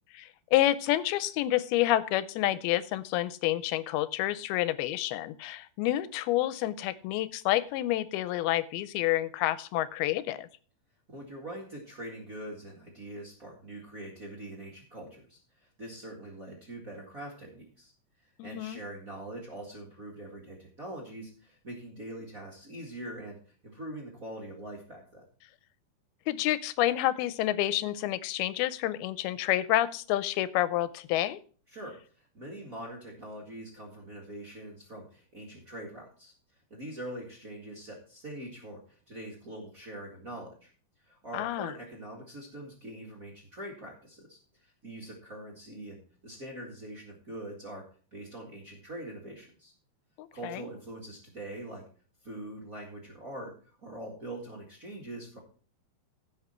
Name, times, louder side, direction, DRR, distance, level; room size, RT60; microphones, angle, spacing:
voice 1, 0.1-10.5 18.4-18.8 26.3-31.4 41.3-41.7 50.2-50.6, left 14 dB, 85° left, 16 dB, 2.5 m, -29 dB
voice 2, 11.1-17.9 18.4-23.4 23.6-25.2 31.7-32.0 32.3-36.3 36.7-40.7 41.0-47.8 48.1-49.7 50.3-51.8 52.2-55.4, right 1 dB, 35° right, -2 dB, 1.5 m, -43 dB
15.5 x 5.5 x 4.3 m, 0.41 s
omnidirectional pair, 4.4 m